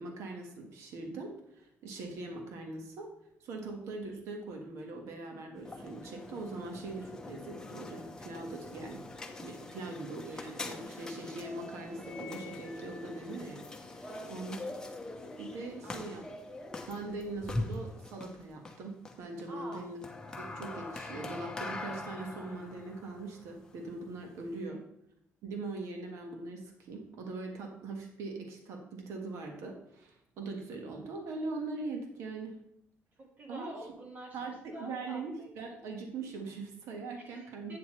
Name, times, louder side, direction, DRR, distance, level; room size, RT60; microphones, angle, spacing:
voice 1, 0.0-3.1 3.4-9.0 9.4-14.6 15.4-16.2 16.9-20.0 20.4-24.8 25.4-32.6 33.5-33.7 34.3-37.7, right 3 dB, 80° right, 2 dB, 1.5 m, -41 dB
sound 1, 5.6-24.6, left 2 dB, 15° left, 0.9 m, -43 dB
voice 2, 14.0-14.8 15.8-16.3 19.5-19.9 24.6-24.8 33.2-34.4 34.7-35.5 37.2-37.8, right 1 dB, 35° right, 0 dB, 1.5 m, -48 dB
8.5 x 7.5 x 3.2 m, 0.75 s
cardioid pair, 140°, 5 cm